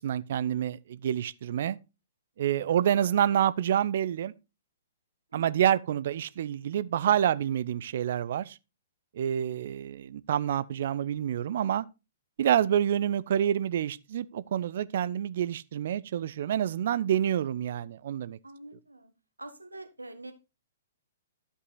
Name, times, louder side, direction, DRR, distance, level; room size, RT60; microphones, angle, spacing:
voice 1, 0.0-1.8 2.4-4.3 5.3-8.6 9.1-11.9 12.4-18.4, right 10 dB, 50° right, 0.5 m, -27 dB
voice 2, 9.4-9.9 18.2-19.1 19.4-20.3, right 2 dB, 80° right, 1.5 m, -46 dB
12.5 x 5.5 x 4.0 m
figure-of-eight pair, 115°, 0 cm